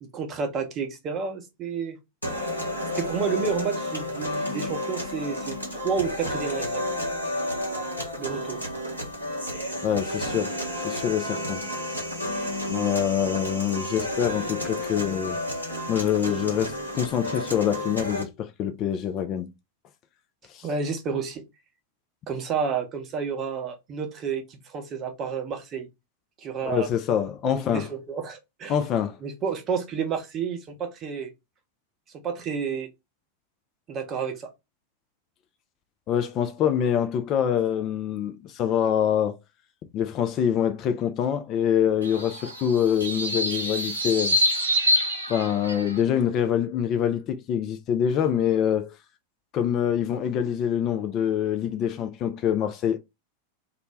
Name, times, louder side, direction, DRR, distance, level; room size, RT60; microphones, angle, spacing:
voice 1, 0.0-2.0 3.0-6.8 8.2-8.6 20.6-21.4 22.3-25.9 26.4-26.9 27.4-28.7 29.2-31.3 32.2-32.9 33.9-34.5, right 6 dB, 30° right, 0.7 m, -30 dB
sound 1, 2.2-18.2, left 1 dB, 85° left, 0.8 m, -31 dB
voice 2, 9.8-10.6 10.8-11.7 12.7-15.4 15.9-19.5 20.5-20.7 26.6-27.9 28.7-29.2 36.1-39.4 39.9-44.4 45.3-48.9 49.5-53.0, left 9 dB, 35° left, 0.3 m, -25 dB
sound 2, 42.0-46.0, left 1 dB, 75° right, 0.6 m, -26 dB
2.4 x 2.1 x 3.1 m
figure-of-eight pair, 90°, 0 cm